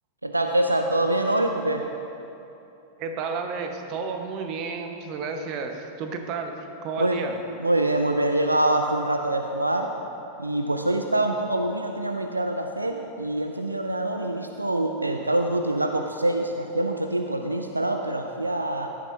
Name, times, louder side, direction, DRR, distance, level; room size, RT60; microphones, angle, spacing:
voice 1, 0.2-1.9 7.0-7.2 7.6-9.9 10.4-18.9, right 1 dB, 85° right, 5 dB, 0.5 m, -25 dB
voice 2, 3.0-7.4, right 4 dB, 40° right, 4 dB, 1.2 m, -32 dB
16.0 x 12.5 x 2.7 m, 2.9 s
figure-of-eight pair, 90°, 0 cm